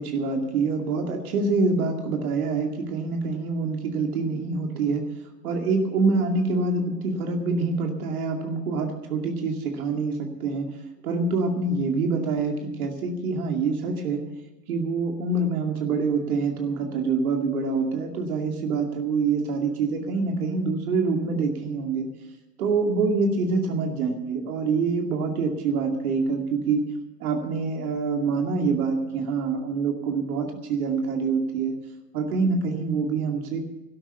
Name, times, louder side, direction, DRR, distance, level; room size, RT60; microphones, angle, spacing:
voice 1, 0.0-5.0 5.4-10.7 11.0-14.2 14.7-22.1 22.6-26.8 27.2-31.7 32.1-33.6, right 4 dB, 60° right, 3 dB, 2.4 m, -25 dB
12.5 x 11.5 x 7.0 m, 1.1 s
hypercardioid pair, 105°, 48 cm